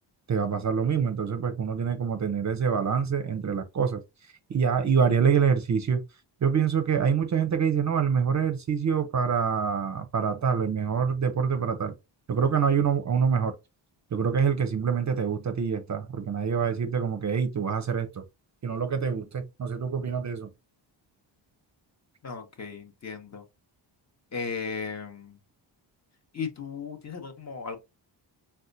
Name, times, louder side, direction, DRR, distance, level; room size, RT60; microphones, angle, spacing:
voice 1, 0.3-4.0 4.5-6.0 6.4-11.9 12.3-13.5 14.1-18.2 18.6-20.5, right 6 dB, 40° right, 0.5 m, -26 dB
voice 2, 22.2-23.4 24.3-25.4 26.3-27.8, left 5 dB, 35° left, 0.8 m, -36 dB
4.1 x 2.2 x 2.5 m
cardioid pair, 90°, 45 cm